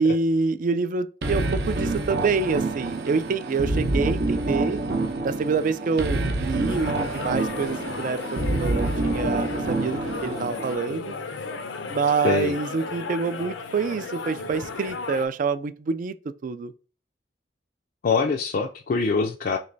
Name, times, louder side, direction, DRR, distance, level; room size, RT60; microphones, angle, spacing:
voice 1, 0.0-4.8 5.2-11.1 11.9-16.7, right 4 dB, 45° right, 0.3 m, -26 dB
sound 1, 1.2-10.7, right 2 dB, 60° right, 0.7 m, -27 dB
sound 2, 6.7-15.3, left 4 dB, 90° left, 0.6 m, -34 dB
voice 2, 18.0-19.6, left 4 dB, 50° left, 0.4 m, -23 dB
3.2 x 3.1 x 3.8 m
head